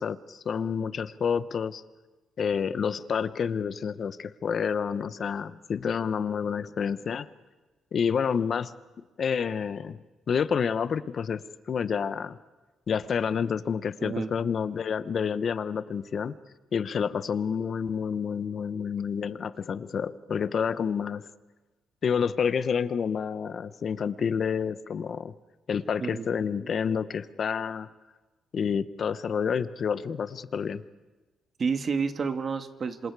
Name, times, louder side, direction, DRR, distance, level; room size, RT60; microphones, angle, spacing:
voice 1, 0.0-1.8 2.4-7.3 7.9-8.7 9.2-10.0 10.3-12.4 12.9-16.4 16.7-21.3 22.0-25.3 25.7-27.9 28.5-30.8, left 7 dB, 50° left, 14 dB, 0.9 m, -29 dB
voice 2, 14.0-14.3 26.0-26.3 31.6-33.1, right 5 dB, 45° right, 8 dB, 1.7 m, -29 dB
27.0 x 26.5 x 4.8 m, 1.2 s
cardioid pair, 90°, 0 cm